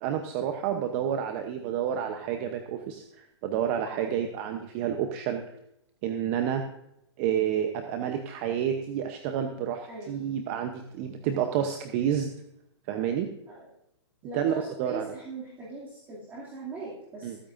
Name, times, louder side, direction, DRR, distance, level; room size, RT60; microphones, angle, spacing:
voice 1, 0.0-5.4 6.0-6.6 7.2-12.3 12.9-13.3 14.3-15.0 17.2-17.4, right 9 dB, 35° right, 6 dB, 0.8 m, -29 dB
voice 2, 9.9-10.2 13.5-13.7 14.2-17.4, right 2 dB, 15° right, -7 dB, 2.5 m, -40 dB
21.0 x 9.0 x 2.6 m, 0.82 s
hypercardioid pair, 150°, 15 cm